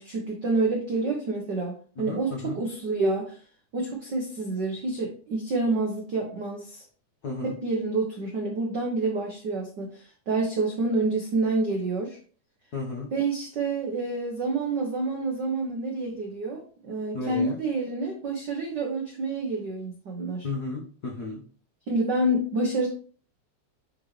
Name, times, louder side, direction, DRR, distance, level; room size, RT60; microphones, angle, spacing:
voice 1, 0.0-3.4 3.7-6.8 7.4-12.2 13.1-20.5 21.9-22.9, right 2 dB, 75° right, 0 dB, 1.0 m, -28 dB
voice 2, 2.1-2.6 7.2-7.5 12.7-13.1 17.1-17.6 20.4-21.4, left 3 dB, 80° left, 0 dB, 0.8 m, -33 dB
9.1 x 4.0 x 3.2 m, 0.42 s
omnidirectional pair, 3.5 m